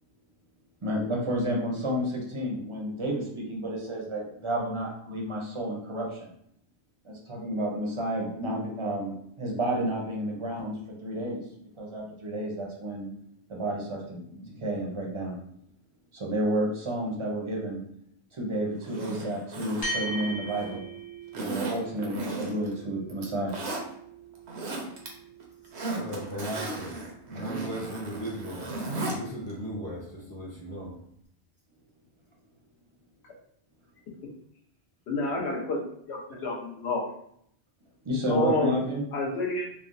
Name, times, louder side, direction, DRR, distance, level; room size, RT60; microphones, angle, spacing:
voice 1, 0.8-6.3 7.0-11.4 11.8-13.1 13.5-15.4 16.1-17.8 18.3-20.8 21.3-23.6 38.0-39.0, right 1 dB, 35° right, -2 dB, 0.5 m, -31 dB
Zipper (clothing), 18.8-20.8 21.3-22.7 23.1-23.8 24.3-25.1 25.4-29.2 29.5-29.6, right 2 dB, 80° right, 0.9 m, -35 dB
sound 1, 19.8-28.5, right 2 dB, 45° left, 1.0 m, -41 dB
voice 2, 25.9-26.9 27.3-31.0, right 1 dB, 15° left, -8 dB, 0.5 m, -37 dB
voice 3, 35.1-35.8 36.1-37.1 38.3-38.9 39.1-39.7, left 2 dB, 75° left, -1 dB, 1.0 m, -29 dB
3.2 x 2.0 x 2.5 m, 0.69 s
omnidirectional pair, 1.1 m